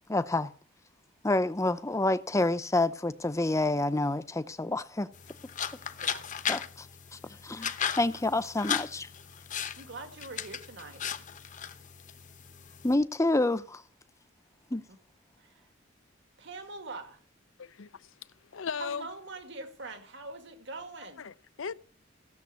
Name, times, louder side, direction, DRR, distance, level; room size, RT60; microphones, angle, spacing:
voice 1, 0.1-0.5 1.2-5.1 6.5-6.9 7.1-9.1 12.8-13.8 14.7-14.8, left 2 dB, 15° left, 0.7 m, -28 dB
sound 1, 5.1-12.9, left 8 dB, 40° left, 0.9 m, -37 dB
voice 2, 9.8-11.3 14.9-15.0 15.4-15.6 16.4-17.2 18.8-21.3, right 3 dB, 65° right, 2.1 m, -43 dB
voice 3, 17.6-18.1 18.5-19.1 21.0-21.7, left 6 dB, 85° left, 0.6 m, -37 dB
15.5 x 7.2 x 8.3 m
head